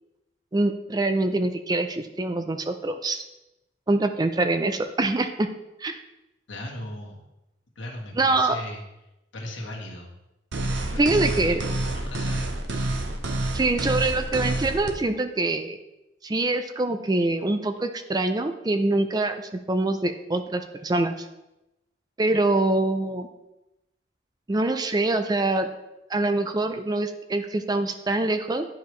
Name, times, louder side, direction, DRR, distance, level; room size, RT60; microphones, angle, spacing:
voice 1, 0.5-3.2 3.9-5.5 5.8-6.0 8.2-8.6 10.9-11.6 13.5-15.8 16.2-21.3 22.2-23.3 24.5-25.7 26.1-28.7, right 2 dB, 20° right, 8 dB, 0.4 m, -24 dB
voice 2, 6.5-7.3 7.7-8.8 9.3-10.1 10.8-12.5, left 1 dB, 85° left, -1 dB, 1.4 m, -38 dB
sound 1, 10.5-14.9, right 2 dB, 70° right, 0.8 m, -28 dB
10.0 x 4.8 x 3.2 m, 0.94 s
head